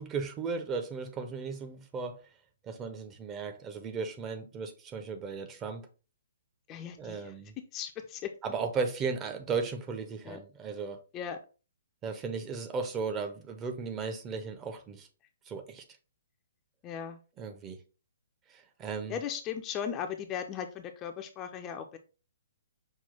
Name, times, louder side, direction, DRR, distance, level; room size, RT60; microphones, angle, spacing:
voice 1, 0.0-2.2 2.6-5.9 7.0-7.5 8.4-11.0 12.0-15.1 15.5-15.8 17.4-17.8 18.5-19.2, right 5 dB, 20° right, 0.6 m, -36 dB
voice 2, 6.7-7.3 7.7-8.3 10.2-10.4 11.1-11.4 16.8-17.2 19.1-22.0, left 8 dB, 25° left, 0.5 m, -37 dB
5.6 x 2.4 x 3.4 m
figure-of-eight pair, 125°, 0 cm